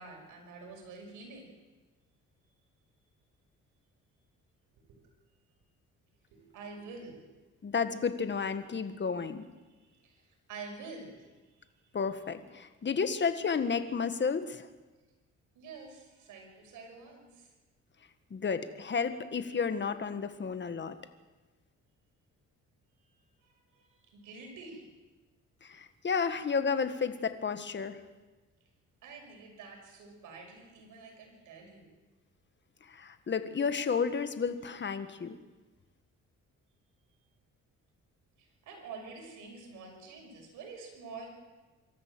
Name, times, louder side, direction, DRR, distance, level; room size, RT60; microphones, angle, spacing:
voice 1, 0.0-1.5 4.8-5.0 6.3-7.2 7.6-7.7 9.7-11.7 15.5-17.5 23.0-24.9 29.0-31.8 38.4-41.3, right 4 dB, 90° right, 2 dB, 5.9 m, -48 dB
voice 2, 7.6-9.4 11.9-14.7 18.3-21.0 25.6-28.0 32.9-35.4, left 5 dB, 35° left, 10 dB, 1.7 m, -32 dB
25.5 x 13.5 x 7.8 m, 1.2 s
cardioid pair, 90°, 30 cm